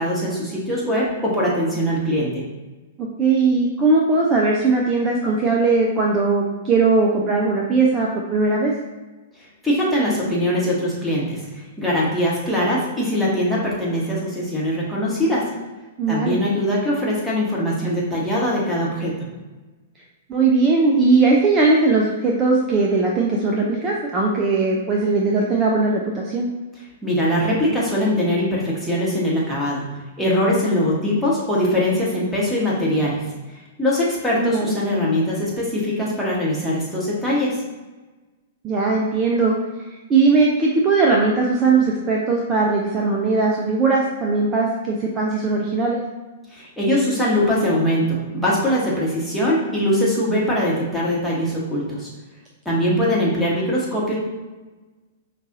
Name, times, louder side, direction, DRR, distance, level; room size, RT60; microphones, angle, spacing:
voice 1, 0.0-2.4 9.6-15.6 16.1-19.3 27.0-29.9 30.2-33.3 33.8-37.6 46.5-52.1 52.6-54.2, equal, 5° left, -7 dB, 1.2 m, -22 dB
voice 2, 3.2-8.7 16.0-16.4 20.3-26.5 34.3-34.8 38.6-39.5 40.1-46.0, right 3 dB, 25° right, -1 dB, 0.5 m, -19 dB
5.2 x 2.4 x 2.6 m, 1.2 s
figure-of-eight pair, 105°, 0 cm